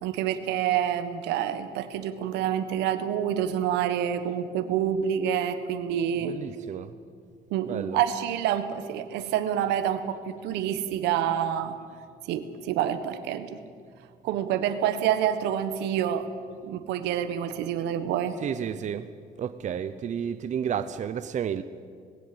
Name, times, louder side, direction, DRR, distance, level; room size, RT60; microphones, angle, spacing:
voice 1, 0.0-6.4 7.5-11.8 12.3-13.6 14.2-16.3 16.6-18.4, right 10 dB, 90° right, 10 dB, 1.5 m, -27 dB
voice 2, 6.2-7.0 7.7-8.0 18.4-19.1 19.4-21.6, right 8 dB, 45° right, 12 dB, 0.8 m, -31 dB
19.5 x 17.5 x 7.9 m, 2.2 s
cardioid pair, 110°, 17 cm